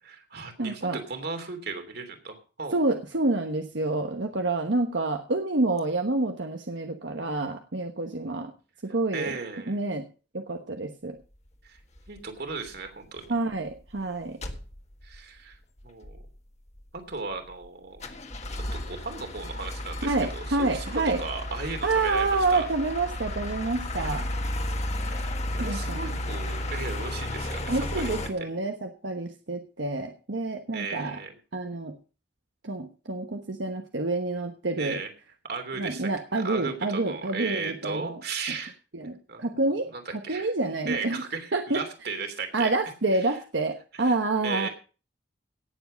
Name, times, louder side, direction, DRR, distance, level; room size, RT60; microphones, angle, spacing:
voice 1, 0.0-2.8 9.1-9.8 11.6-11.8 12.1-13.4 15.0-15.6 15.8-16.2 17.1-18.0 18.5-22.7 25.0-28.2 30.7-31.4 34.8-35.1 35.5-38.7 39.3-39.5 39.9-40.5 40.9-42.7 43.1-43.4 43.9-44.1 44.4-44.7, right 4 dB, 60° right, 6 dB, 3.0 m, -36 dB
voice 2, 0.6-1.0 2.7-8.5 8.8-9.4 9.7-10.0 10.3-11.2 13.3-14.4 20.0-21.2 21.8-24.3 25.6-26.0 27.7-31.2 31.5-31.9 32.6-35.0 35.8-38.2 38.9-41.2 41.5-41.8 42.5-44.7, right 2 dB, 90° right, 4 dB, 1.2 m, -28 dB
sound 1, 12.0-12.2 12.7-12.9 13.2-13.3 13.5-14.0 14.4-15.2 15.5-15.6 15.8-16.3 16.8-17.7 18.0-28.3, left 1 dB, 40° left, 1.6 m, -33 dB
17.5 x 7.4 x 5.2 m, 0.36 s
head